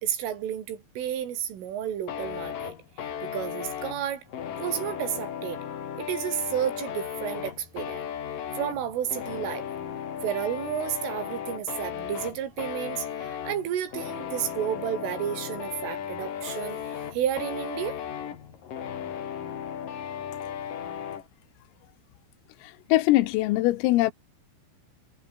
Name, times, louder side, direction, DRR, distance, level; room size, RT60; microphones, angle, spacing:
voice 1, 0.0-2.7 3.2-4.2 4.6-5.7 6.0-8.1 8.5-9.7 10.2-18.0, right 10 dB, 75° right, 5.6 m, -31 dB
sound 1, 2.1-21.3, left 8 dB, 50° left, 3.5 m, -36 dB
voice 2, 22.6-24.1, left 17 dB, 90° left, 3.8 m, -22 dB
omnidirectional pair, 5.8 m